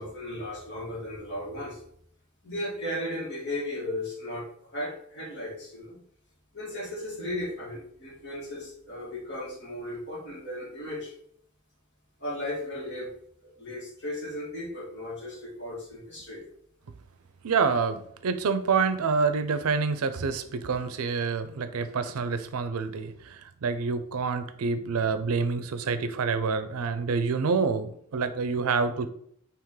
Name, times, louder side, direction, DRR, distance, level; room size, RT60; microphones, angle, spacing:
voice 1, 0.0-1.8 2.4-4.5 4.7-6.0 6.5-11.1 12.2-13.1 13.4-16.4, left 1 dB, 50° left, -4 dB, 1.7 m, -36 dB
voice 2, 17.4-29.1, right 5 dB, 80° right, 10 dB, 0.4 m, -27 dB
4.8 x 2.9 x 3.7 m, 0.66 s
head